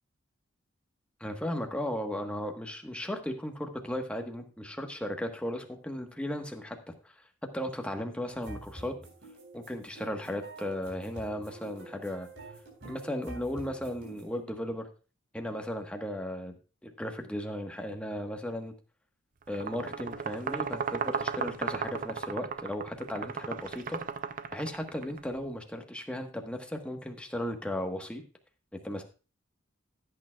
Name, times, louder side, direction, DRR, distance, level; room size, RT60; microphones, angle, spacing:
voice 1, 1.2-6.8 7.0-7.1 7.5-8.9 9.5-12.3 12.8-14.8 15.3-16.5 16.8-18.7 19.5-24.0 24.5-28.2 28.8-29.0, left 1 dB, 5° left, 3 dB, 1.2 m, -36 dB
sound 1, 8.3-14.4, right 2 dB, 70° right, 4.0 m, -47 dB
sound 2, 19.5-25.2, right 6 dB, 45° right, 0.5 m, -35 dB
15.5 x 8.8 x 2.3 m, 0.34 s
head